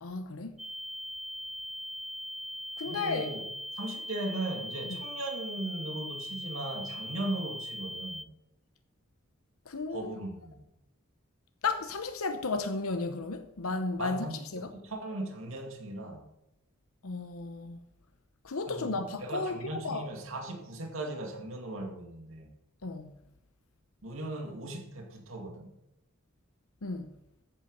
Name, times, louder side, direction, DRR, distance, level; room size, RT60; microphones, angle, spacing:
voice 1, 0.0-0.6 2.8-3.3 9.7-10.1 11.6-14.7 17.0-17.8 18.4-20.1 22.8-23.1 26.8-27.1, left 3 dB, 85° left, 0.9 m, -34 dB
sound 1, 0.6-8.2, equal, ahead, 0.3 m, -40 dB
voice 2, 2.9-3.4 3.7-8.3 9.9-10.7 14.0-16.2 18.7-22.5 24.0-25.7, right 2 dB, 70° right, 2.3 m, -38 dB
13.5 x 8.2 x 5.5 m
head